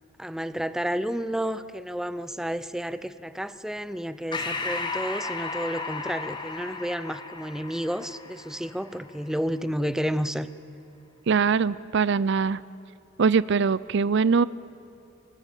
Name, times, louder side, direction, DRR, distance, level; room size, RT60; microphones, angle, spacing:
voice 1, 0.2-10.5, equal, 5° right, 14 dB, 0.7 m, -31 dB
Breathing, 4.3-9.2, left 3 dB, 25° left, 1.9 m, -34 dB
voice 2, 11.3-12.6 13.2-14.4, right 5 dB, 60° right, 19 dB, 0.5 m, -22 dB
25.0 x 20.0 x 9.1 m, 2.8 s
head